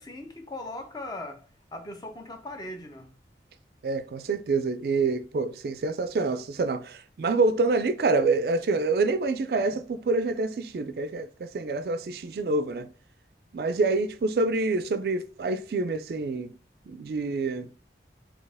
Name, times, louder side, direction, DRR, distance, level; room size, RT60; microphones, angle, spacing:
voice 1, 0.0-1.4 1.7-3.1, left 1 dB, 20° left, 0.5 m, -39 dB
voice 2, 3.8-12.9 13.5-16.5 16.9-17.7, right 3 dB, 60° right, 0.3 m, -27 dB
4.4 x 2.8 x 3.4 m
head